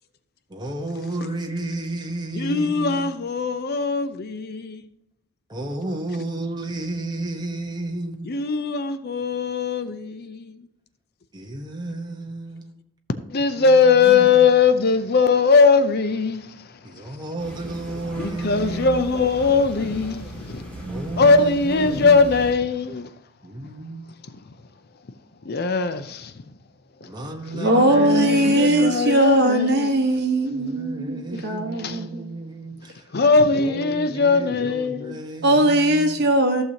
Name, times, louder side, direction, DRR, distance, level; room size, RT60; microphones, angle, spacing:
voice 1, 0.5-3.1 5.5-8.3 11.3-12.6 13.7-14.5 16.8-19.1 20.9-22.3 23.4-24.0 27.0-29.0 30.5-33.0 33.5-36.2, right 2 dB, 20° right, 1.1 m, -32 dB
voice 2, 2.3-4.8 8.2-10.7 13.3-17.3 18.1-20.7 21.1-23.1 24.2-24.4 25.4-26.4 27.0-27.1 27.4-29.9 31.3-31.5 31.8-32.1 33.1-35.2, left 4 dB, 45° left, 0.5 m, -20 dB
sound 1, 17.4-22.5, right 1 dB, 5° left, 2.2 m, -37 dB
voice 3, 27.6-32.3 35.4-36.6, right 1 dB, 50° right, 1.3 m, -20 dB
14.5 x 6.7 x 2.9 m
head